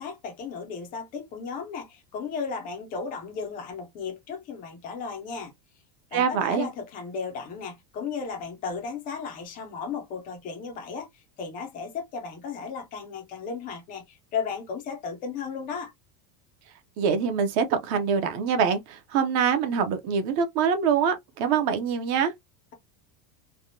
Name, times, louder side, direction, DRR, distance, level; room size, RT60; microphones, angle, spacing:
voice 1, 0.0-5.5 6.1-15.9, left 5 dB, 20° left, 0.3 m, -35 dB
voice 2, 6.1-6.7 17.0-22.3, right 6 dB, 40° right, 0.6 m, -24 dB
3.4 x 2.1 x 2.6 m
supercardioid pair, 165°, 49 cm